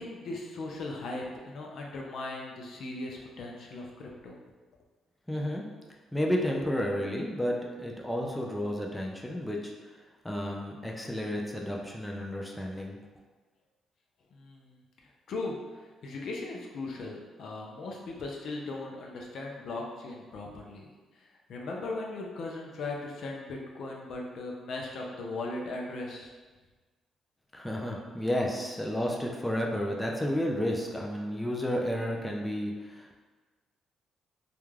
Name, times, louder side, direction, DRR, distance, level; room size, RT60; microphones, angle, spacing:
voice 1, 0.0-4.4 14.3-26.3, left 2 dB, 65° left, -1 dB, 0.4 m, -38 dB
voice 2, 5.3-5.6 6.1-9.7 10.2-13.0 27.5-33.2, equal, 5° left, -1 dB, 0.4 m, -31 dB
2.3 x 2.1 x 3.1 m, 1.3 s
cardioid pair, 90°, 0 cm